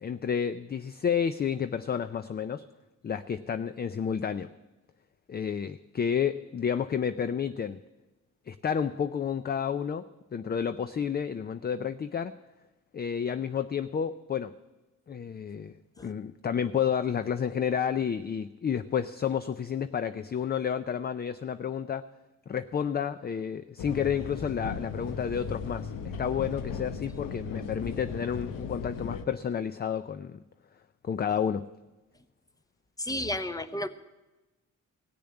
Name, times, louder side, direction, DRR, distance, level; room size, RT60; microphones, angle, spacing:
voice 1, 0.0-2.7 3.0-4.5 5.3-7.8 8.5-10.1 10.3-12.3 12.9-14.5 15.1-15.8 16.0-22.0 22.5-25.9 26.2-30.4 31.0-31.7, left 7 dB, 30° left, 12 dB, 0.4 m, -30 dB
sound 1, 23.8-29.2, left 5 dB, 90° left, 1.0 m, -37 dB
voice 2, 33.0-33.9, left 1 dB, 10° left, 11 dB, 0.8 m, -32 dB
17.0 x 6.9 x 8.8 m, 1.1 s
cardioid pair, 100°, 32 cm